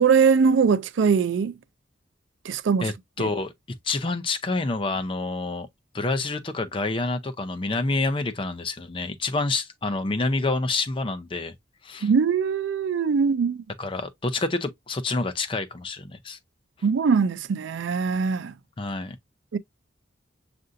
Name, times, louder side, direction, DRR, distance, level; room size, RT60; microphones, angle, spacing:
voice 1, 0.0-1.5 2.5-2.9 3.2-3.3 12.0-13.6 16.8-18.5 19.5-19.6, right 6 dB, 75° right, 0.4 m, -21 dB
voice 2, 2.8-3.5 3.8-5.7 5.9-11.5 11.8-12.1 13.8-16.4 18.8-19.2, left 3 dB, 25° left, 0.5 m, -28 dB
6.5 x 2.5 x 2.5 m
head